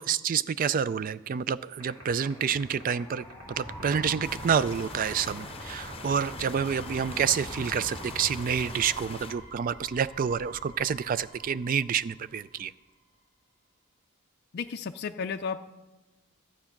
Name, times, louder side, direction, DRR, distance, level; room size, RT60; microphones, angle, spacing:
voice 1, 0.0-12.7, right 7 dB, 40° right, 17 dB, 0.3 m, -28 dB
sound 1, 1.8-12.7, equal, 5° right, 4.3 m, -44 dB
sound 2, 1.8-9.3, right 2 dB, 75° right, 4.2 m, -48 dB
sound 3, 4.2-9.3, left 4 dB, 25° left, 0.8 m, -44 dB
voice 2, 14.5-15.6, left 5 dB, 50° left, 6 dB, 0.4 m, -33 dB
12.5 x 8.6 x 5.8 m, 1.1 s
head